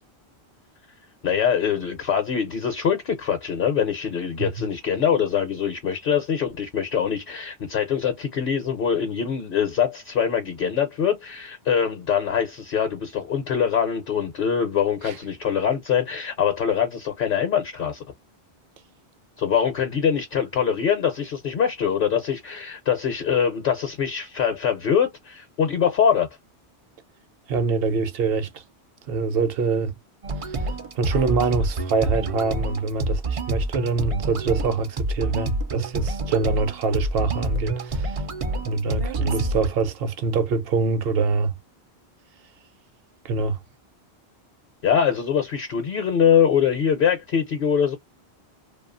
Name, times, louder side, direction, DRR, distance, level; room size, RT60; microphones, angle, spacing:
voice 1, 1.2-18.0 19.4-26.3 44.8-48.0, left 8 dB, 60° left, 0.7 m, -23 dB
voice 2, 27.5-28.6 29.1-29.9 30.5-30.6 30.9-38.2 38.6-41.5 43.2-43.6, right 4 dB, 65° right, 0.8 m, -24 dB
sound 1, 30.2-39.7, right 2 dB, 50° right, 0.4 m, -28 dB
2.7 x 2.3 x 2.4 m
omnidirectional pair, 1.1 m